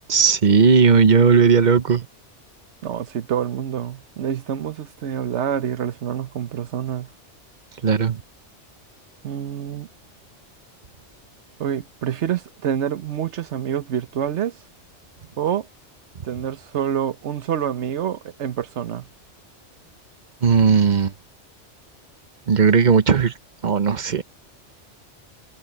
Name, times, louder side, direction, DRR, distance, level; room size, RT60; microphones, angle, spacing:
voice 1, 0.1-2.1 7.8-8.2 20.4-21.1 22.5-23.3 23.6-24.2, right 6 dB, 40° right, 1.0 m, -16 dB
voice 2, 2.8-7.1 9.2-9.9 11.6-14.6 15.4-15.7 16.2-19.1, right 9 dB, 70° right, 1.2 m, -27 dB
omnidirectional pair, 1.2 m